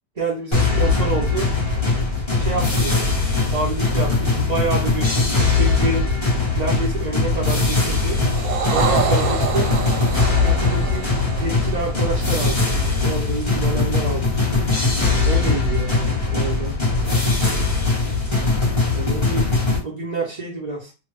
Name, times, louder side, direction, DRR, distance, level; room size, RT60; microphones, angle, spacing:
voice 1, 0.2-1.5 2.3-3.1 3.5-6.1 6.5-8.2 8.7-9.7 10.4-11.1 11.4-14.7 15.2-16.8 18.9-19.5 19.8-20.9, right 3 dB, 65° right, -3 dB, 0.4 m, -28 dB
sound 1, 0.5-19.8, left 3 dB, 20° left, 0.9 m, -20 dB
sound 2, 8.1-12.7, right 6 dB, 90° right, 1.4 m, -27 dB
2.9 x 2.3 x 3.3 m, 0.30 s
omnidirectional pair, 2.0 m